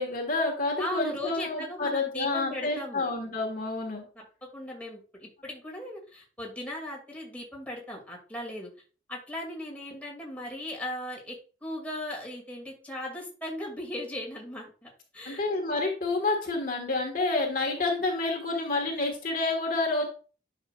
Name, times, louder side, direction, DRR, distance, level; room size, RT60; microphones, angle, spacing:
voice 1, 0.0-4.0 15.2-20.1, left 3 dB, 45° left, 1 dB, 1.6 m, -29 dB
voice 2, 0.8-3.1 4.5-8.7 9.1-11.4 11.6-15.4, left 1 dB, 10° left, -2 dB, 2.2 m, -37 dB
9.8 x 6.0 x 2.4 m, 0.37 s
head